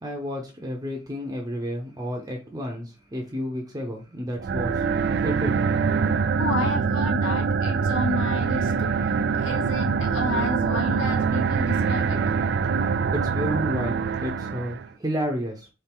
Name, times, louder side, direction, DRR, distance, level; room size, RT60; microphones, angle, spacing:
voice 1, 0.0-4.8 5.2-5.6 6.0-6.2 12.8-15.7, equal, 20° right, 0.7 m, -31 dB
sound 1, 4.4-14.9, right 5 dB, 60° right, 0.3 m, -24 dB
voice 2, 6.4-9.1 9.4-12.2, left 2 dB, 75° left, 1.0 m, -31 dB
4.4 x 3.2 x 3.6 m
head